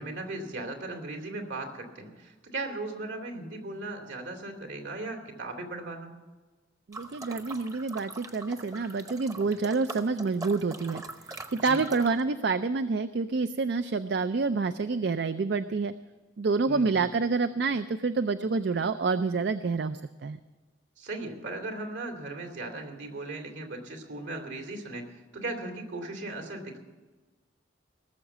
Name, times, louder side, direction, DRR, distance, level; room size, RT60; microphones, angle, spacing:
voice 1, 0.0-6.1 11.5-11.8 16.7-17.0 21.0-26.8, right 2 dB, 75° right, 3 dB, 2.5 m, -37 dB
sound 1, 6.9-12.2, right 2 dB, 20° right, 0.8 m, -42 dB
voice 2, 6.9-11.0 11.5-15.9 16.4-20.4, right 4 dB, 60° right, 11 dB, 0.4 m, -28 dB
18.5 x 7.3 x 7.9 m, 1.3 s
head